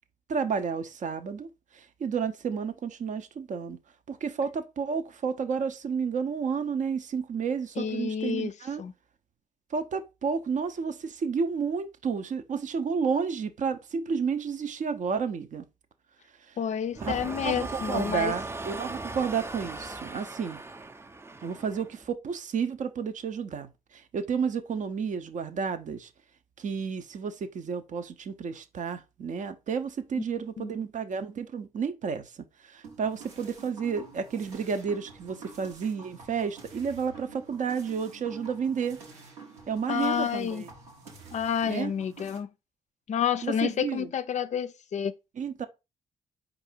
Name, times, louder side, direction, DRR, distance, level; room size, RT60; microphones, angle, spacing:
voice 1, 0.3-3.8 4.1-8.8 9.7-15.7 17.0-17.2 17.4-20.6 21.4-26.1 26.6-32.3 32.6-39.0 39.7-40.7 41.7-41.9 43.4-44.1 45.4-45.7, right 6 dB, 55° right, 0.7 m, -31 dB
voice 2, 7.8-8.5 8.8-8.9 16.6-18.3 30.6-30.7 39.9-40.6 41.3-42.5 43.1-45.2, left 8 dB, 50° left, 0.4 m, -29 dB
sound 1, 16.9-22.1, right 2 dB, 15° right, 0.6 m, -38 dB
sound 2, 32.8-42.4, right 4 dB, 90° right, 1.2 m, -48 dB
4.7 x 2.6 x 4.3 m
hypercardioid pair, 45°, 15 cm